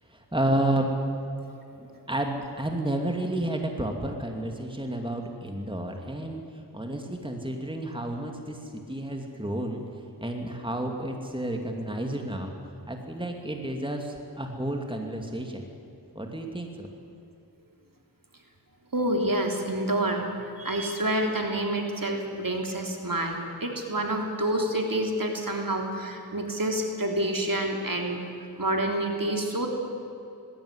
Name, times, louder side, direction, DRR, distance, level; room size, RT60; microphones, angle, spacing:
voice 1, 0.1-0.9 1.8-9.8 10.2-12.5 12.9-15.7 16.1-16.9, right 1 dB, 10° right, 3 dB, 2.6 m, -31 dB
voice 2, 18.9-20.3 20.6-28.2 28.6-29.7, right 1 dB, 55° right, 2 dB, 3.4 m, -28 dB
19.5 x 16.5 x 9.9 m, 2.7 s
wide cardioid pair, 40°, 41 cm